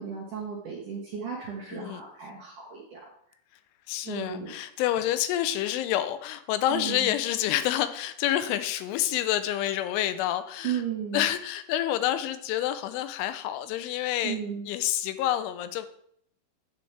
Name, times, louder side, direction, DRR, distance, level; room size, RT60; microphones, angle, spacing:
voice 1, 0.0-3.0 4.0-4.6 6.7-7.1 10.6-11.3 14.2-14.7, right 8 dB, 70° right, -4 dB, 2.0 m, -34 dB
voice 2, 1.7-2.0 3.9-10.8 11.1-14.4 14.7-15.9, left 12 dB, 85° left, 11 dB, 3.1 m, -28 dB
10.0 x 7.7 x 3.3 m, 0.68 s
omnidirectional pair, 5.5 m